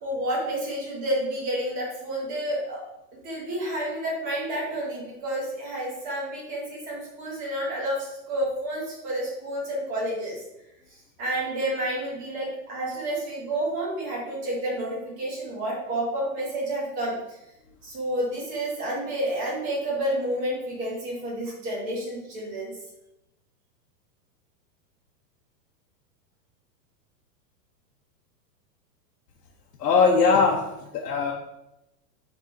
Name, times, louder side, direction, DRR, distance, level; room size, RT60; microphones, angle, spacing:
voice 1, 0.0-2.8 3.2-10.4 11.2-17.2 17.8-22.7, right 1 dB, 15° right, -4 dB, 1.1 m, -30 dB
voice 2, 29.8-31.3, left 5 dB, 75° left, -2 dB, 1.1 m, -21 dB
5.1 x 3.7 x 5.2 m, 0.89 s
supercardioid pair, 180°, 49 cm